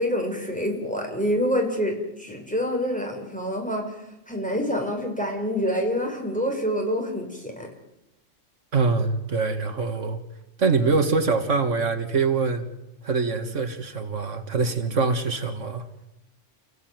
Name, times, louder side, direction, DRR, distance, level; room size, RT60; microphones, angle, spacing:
voice 1, 0.0-3.9 4.3-7.7, equal, 5° left, 1 dB, 5.3 m, -26 dB
voice 2, 8.7-10.2 10.6-12.7 13.0-15.9, right 4 dB, 80° right, 7 dB, 2.2 m, -24 dB
29.5 x 16.0 x 9.4 m, 0.97 s
omnidirectional pair, 1.3 m